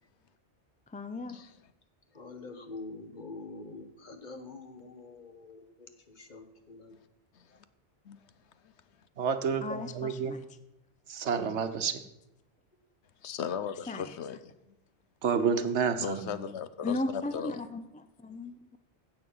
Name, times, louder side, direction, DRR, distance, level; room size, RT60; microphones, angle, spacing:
voice 1, 0.9-1.4 9.6-10.4 13.9-14.0 16.8-18.8, left 2 dB, 10° left, 0.4 m, -36 dB
voice 2, 2.2-5.9 6.2-6.9, left 3 dB, 45° left, 1.3 m, -45 dB
voice 3, 9.2-10.3 11.1-12.0 15.2-16.3, right 6 dB, 80° right, 1.2 m, -29 dB
voice 4, 13.2-14.7 16.0-17.6, left 7 dB, 75° left, 1.0 m, -37 dB
16.0 x 6.9 x 5.6 m
omnidirectional pair, 1.2 m